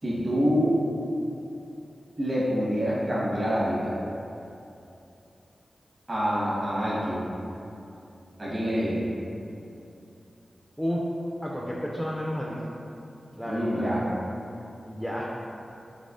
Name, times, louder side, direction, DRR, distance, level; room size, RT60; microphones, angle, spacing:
voice 1, 0.0-0.8 2.2-3.9 6.1-7.3 8.4-9.1 13.5-14.0, equal, 50° right, -8 dB, 1.2 m, -26 dB
voice 2, 11.4-12.6 13.4-13.9 14.8-15.3, equal, 5° left, -4 dB, 0.4 m, -31 dB
4.1 x 2.8 x 2.5 m, 2.8 s
cardioid pair, 55°, 0 cm